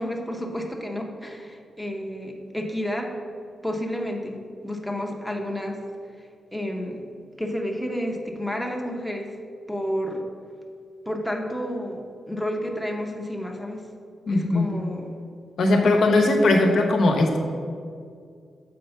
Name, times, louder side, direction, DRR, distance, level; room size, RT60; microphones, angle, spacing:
voice 1, 0.0-3.1 3.6-5.8 6.5-7.0 7.4-9.3 9.7-10.2 11.1-12.0 12.3-13.9 14.3-15.1, equal, ahead, 0 dB, 0.6 m, -30 dB
voice 2, 14.3-14.7 15.6-17.4, left 2 dB, 70° left, 2 dB, 0.9 m, -19 dB
6.7 x 4.6 x 5.6 m, 2.3 s
wide cardioid pair, 150°, 0 cm